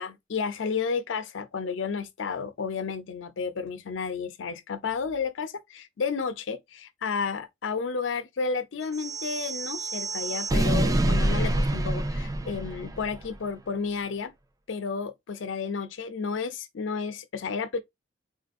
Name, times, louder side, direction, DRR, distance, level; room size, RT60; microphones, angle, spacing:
voice 1, 0.0-14.3 14.7-17.8, left 5 dB, 80° left, 0.5 m, -32 dB
sound 1, 8.9-13.3, right 1 dB, 20° right, 0.4 m, -27 dB
3.8 x 2.5 x 2.4 m
head